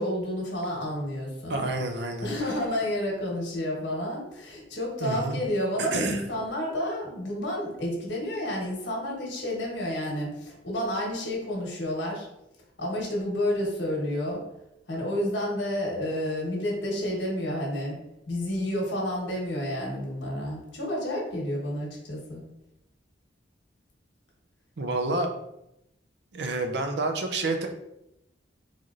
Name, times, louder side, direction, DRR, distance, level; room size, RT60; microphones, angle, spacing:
voice 1, 0.0-1.7 2.2-12.3 12.8-14.4 14.9-18.0 18.3-22.4 25.1-25.2, left 1 dB, 80° left, -2 dB, 1.2 m, -30 dB
voice 2, 1.5-2.3 5.0-5.4 5.8-6.2 24.8-25.3 26.3-27.7, right 2 dB, 65° right, 4 dB, 0.5 m, -29 dB
4.0 x 3.1 x 2.5 m, 0.85 s
head